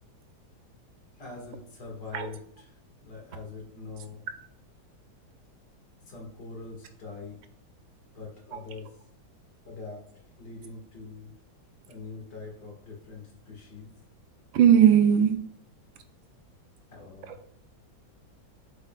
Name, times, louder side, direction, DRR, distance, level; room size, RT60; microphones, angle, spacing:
voice 1, 1.2-2.7 3.0-4.3 6.1-7.4 8.1-8.9 9.6-10.0 10.4-11.3 11.9-13.9 16.9-17.4, left 4 dB, 60° left, -1 dB, 2.3 m, -43 dB
voice 2, 14.5-15.4 17.3-17.4, right 9 dB, 90° right, 8 dB, 1.5 m, -18 dB
7.8 x 6.9 x 2.3 m, 0.63 s
omnidirectional pair, 2.1 m